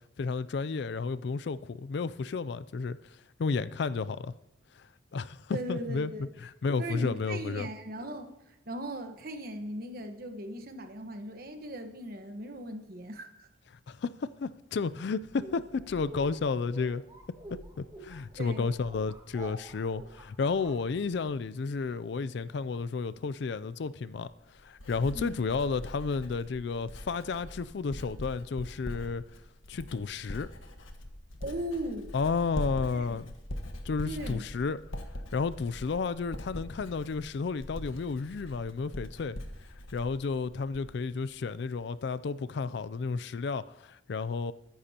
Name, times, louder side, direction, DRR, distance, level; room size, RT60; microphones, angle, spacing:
voice 1, 0.2-3.0 3.4-4.3 4.8-4.9 5.1-7.7 13.9-17.0 17.8-24.3 24.6-29.2 29.7-30.5 32.1-33.3 33.8-34.8 35.3-39.4 39.9-44.5, left 4 dB, 55° left, 0.4 m, -32 dB
voice 2, 5.5-6.3 6.8-13.5 18.4-18.7 25.1-25.5 31.4-32.1 32.9-33.2 34.0-34.4, right 1 dB, 50° right, 1.2 m, -38 dB
sound 1, 15.2-21.5, right 1 dB, 15° right, 1.9 m, -48 dB
Writing, 24.1-41.1 41.4-41.9, left 1 dB, 85° left, 1.4 m, -43 dB
22.0 x 10.5 x 2.9 m
head